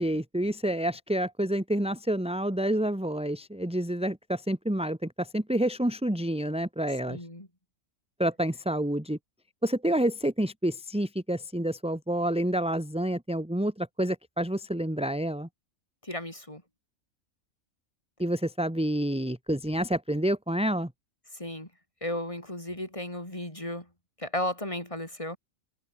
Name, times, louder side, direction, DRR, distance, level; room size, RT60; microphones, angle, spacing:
voice 1, 0.0-7.2 8.2-9.2 9.6-15.5 18.2-20.9, right 1 dB, 5° right, 2.1 m, -28 dB
voice 2, 7.1-7.5 16.0-16.6 21.3-21.7 22.0-23.9 24.2-25.4, left 1 dB, 25° left, 4.7 m, -34 dB
omnidirectional pair, 1.4 m